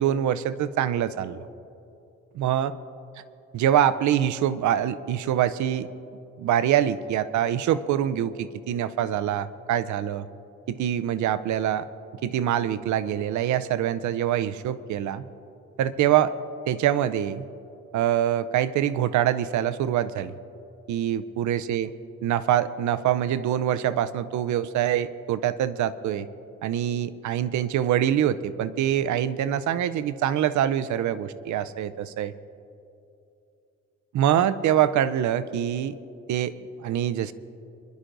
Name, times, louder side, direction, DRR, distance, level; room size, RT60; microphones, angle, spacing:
voice 1, 0.0-1.4 2.3-2.7 3.5-5.9 6.4-10.3 10.7-11.9 12.2-15.2 15.8-16.3 16.7-17.4 17.9-20.3 20.9-21.9 22.2-26.3 26.6-32.3 34.1-35.9 36.3-36.5 36.8-37.3, right 10 dB, 75° right, 14 dB, 0.6 m, -24 dB
26.5 x 11.5 x 2.6 m, 2.7 s
cardioid pair, 90°, 30 cm